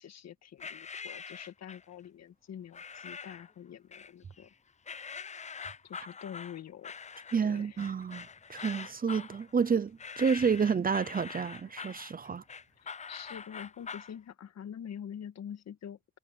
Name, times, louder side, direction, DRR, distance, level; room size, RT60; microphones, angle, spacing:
voice 1, 0.0-4.5 5.8-6.9 7.4-7.9 12.8-16.2, left 9 dB, 60° left, 1.8 m, -46 dB
sound 1, 0.6-1.9 2.7-3.5 3.9-4.5 4.8-14.1, left 6 dB, 25° left, 0.5 m, -44 dB
voice 2, 7.3-12.4, right 6 dB, 30° right, 0.7 m, -30 dB
cardioid pair, 90°, 30 cm